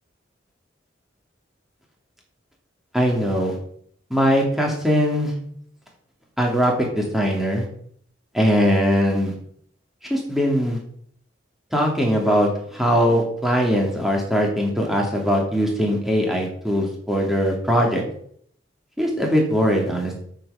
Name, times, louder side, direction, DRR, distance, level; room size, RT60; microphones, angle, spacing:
voice 1, 2.9-3.6 4.1-5.3 6.4-7.6 8.3-9.3 10.1-10.8 11.7-18.0 19.0-20.2, equal, ahead, -1 dB, 2.7 m, -21 dB
9.0 x 6.7 x 7.1 m, 0.64 s
head